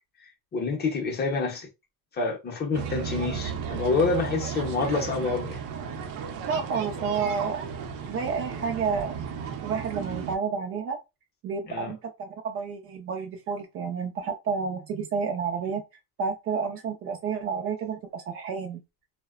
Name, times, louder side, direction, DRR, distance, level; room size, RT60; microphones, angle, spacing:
voice 1, 0.5-1.7 2.1-5.6 11.7-11.9, left 4 dB, 25° left, 0.6 m, -27 dB
sound 1, 2.7-10.4, right 7 dB, 80° right, 0.7 m, -34 dB
voice 2, 6.5-7.8 8.1-9.2 9.6-11.0 11.4-15.8 16.2-18.8, right 5 dB, 40° right, 0.4 m, -30 dB
2.7 x 2.1 x 2.3 m
cardioid pair, 155°, 36 cm